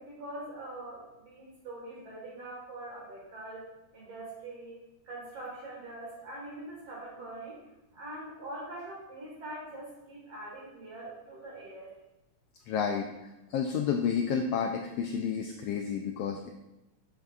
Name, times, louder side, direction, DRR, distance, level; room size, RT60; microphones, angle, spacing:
voice 1, 0.0-3.7 3.9-4.8 5.0-7.6 7.9-11.9, right 1 dB, 60° right, -4 dB, 2.7 m, -43 dB
voice 2, 12.7-13.1 13.5-16.5, left 7 dB, 90° left, 3 dB, 1.4 m, -30 dB
10.0 x 6.9 x 2.4 m, 0.95 s
omnidirectional pair, 3.4 m